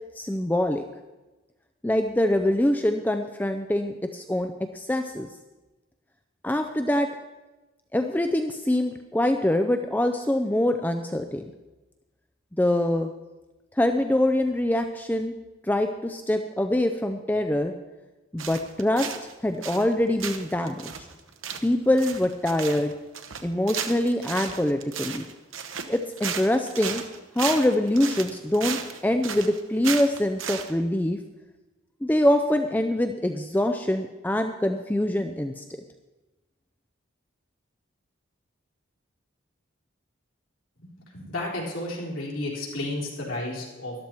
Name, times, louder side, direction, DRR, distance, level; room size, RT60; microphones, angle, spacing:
voice 1, 0.2-0.8 1.8-5.3 6.4-7.1 7.9-11.5 12.6-13.1 13.8-15.3 15.6-17.7 18.3-19.1 19.4-21.1 21.6-22.9 23.4-25.2 25.9-27.0 27.4-31.2 32.0-35.8, left 1 dB, 10° left, 6 dB, 0.4 m, -24 dB
sound 1, 18.4-19.3 19.6-19.9 20.2-30.7, right 7 dB, 80° right, 0.9 m, -34 dB
voice 2, 41.1-43.9, left 1 dB, 85° left, -4 dB, 3.9 m, -32 dB
13.0 x 12.0 x 4.5 m, 1.1 s
head